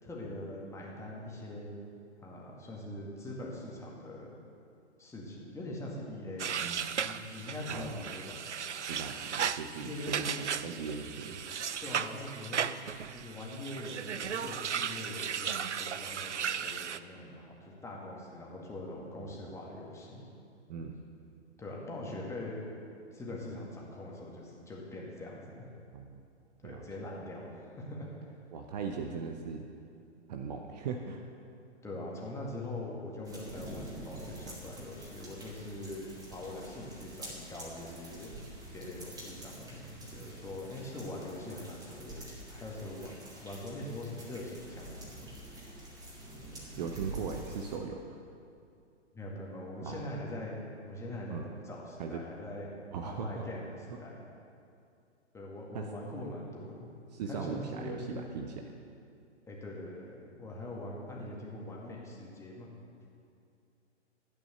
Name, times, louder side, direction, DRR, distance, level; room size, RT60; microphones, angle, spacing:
voice 1, 0.0-1.7 2.2-4.3 5.0-6.6 7.0-8.4 9.8-10.4 11.8-12.6 13.1-20.2 21.6-22.6 22.9-25.7 26.6-28.3 31.8-38.4 38.7-45.3 49.1-52.7 53.0-54.2 55.3-56.9 57.3-58.3 59.5-62.7, left 1 dB, 10° left, -3 dB, 2.0 m, -42 dB
sound 1, 6.4-17.0, right 7 dB, 75° right, 0.6 m, -36 dB
voice 2, 6.6-6.9 7.7-7.9 8.9-11.4 19.2-19.3 20.7-21.0 25.9-26.2 26.6-26.8 28.5-29.7 30.3-31.2 46.8-48.0 49.8-50.0 51.3-51.5 52.0-52.2 52.9-53.3 55.7-55.8 57.1-58.5, right 5 dB, 35° right, 3 dB, 0.8 m, -39 dB
sound 2, 33.2-47.8, right 2 dB, 10° right, 2.2 m, -47 dB
12.5 x 9.0 x 6.8 m, 2.5 s
figure-of-eight pair, 115°, 35 cm